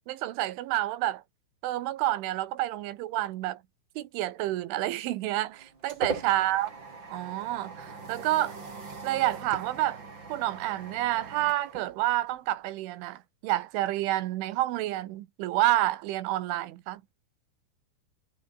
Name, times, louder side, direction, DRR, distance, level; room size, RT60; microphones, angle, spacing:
voice 1, 0.1-1.2 1.6-3.6 4.0-6.7 7.1-8.6 9.0-10.0 10.3-17.0, right 15 dB, 80° right, 3.6 m, -29 dB
sound 1, 5.2-12.6, right 4 dB, 25° right, 4.1 m, -41 dB
omnidirectional pair, 5.6 m